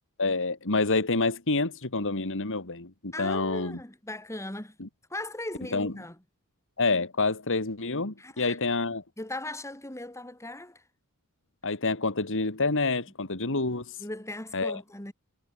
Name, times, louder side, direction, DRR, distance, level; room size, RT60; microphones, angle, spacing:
voice 1, 0.2-3.8 4.8-4.9 5.7-5.9 6.8-9.0 11.6-14.0 14.5-14.8, left 3 dB, 60° left, 2.4 m, -28 dB
voice 2, 3.1-4.8 5.1-6.2 8.2-8.6 9.2-10.8 14.0-15.1, left 1 dB, 15° left, 4.2 m, -38 dB
head